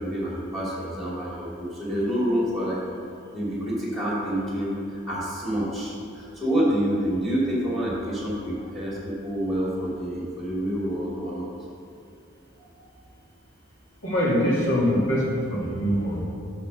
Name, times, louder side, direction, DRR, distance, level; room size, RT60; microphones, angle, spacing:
voice 1, 0.0-2.8 3.3-11.5, equal, ahead, -6 dB, 2.5 m, -27 dB
voice 2, 14.0-16.2, equal, 70° left, -5 dB, 2.5 m, -23 dB
11.0 x 4.2 x 6.6 m, 2.4 s
head